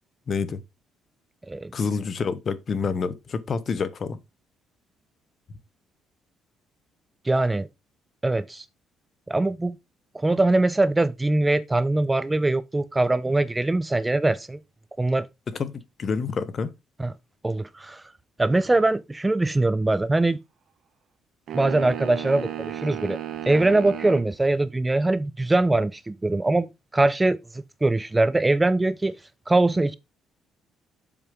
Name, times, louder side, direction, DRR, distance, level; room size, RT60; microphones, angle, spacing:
voice 1, 0.3-0.6 1.7-4.2 15.5-15.7 16.0-16.7, left 5 dB, 40° left, 1.1 m, -27 dB
voice 2, 7.2-7.7 8.2-8.7 9.3-9.8 10.1-14.6 15.0-15.3 17.0-17.1 17.4-18.0 18.4-20.4 21.5-23.2 23.5-26.7 26.9-29.2 29.5-29.9, right 2 dB, 15° right, 0.4 m, -22 dB
sound 1, 21.5-24.3, right 11 dB, 60° right, 1.3 m, -34 dB
7.3 x 4.9 x 5.1 m
cardioid pair, 110°, 0 cm